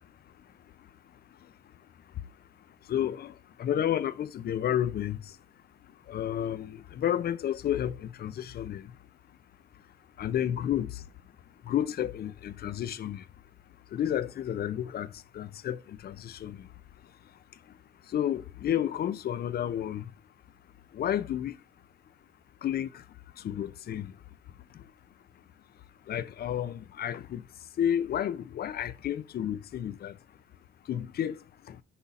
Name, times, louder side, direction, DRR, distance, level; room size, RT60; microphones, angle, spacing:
voice 1, 2.9-3.3 3.6-5.2 6.1-8.9 10.2-11.0 11.7-13.2 13.9-15.1 15.3-16.6 18.1-20.0 20.9-21.6 22.6-22.9 23.4-24.1 26.1-27.4 27.8-30.1 30.9-31.4 31.7-31.8, left 10 dB, 50° left, 0.5 m, -31 dB
8.2 x 5.4 x 2.4 m
cardioid pair, 90°, 20 cm